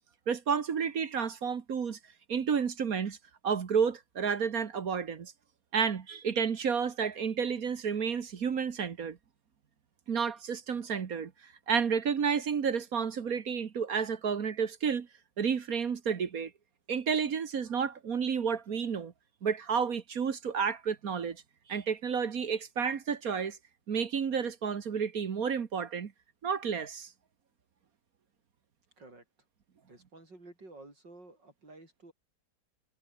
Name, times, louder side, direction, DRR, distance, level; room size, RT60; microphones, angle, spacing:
voice 1, 0.3-2.0 2.3-3.2 3.4-5.3 5.7-9.2 10.1-15.1 15.4-16.5 16.9-19.1 19.4-21.4 21.7-23.6 23.9-26.1 26.4-27.1, right 6 dB, 55° right, 1.7 m, -31 dB
voice 2, 29.9-32.1, right 2 dB, 80° right, 7.7 m, -52 dB
omnidirectional pair, 1.9 m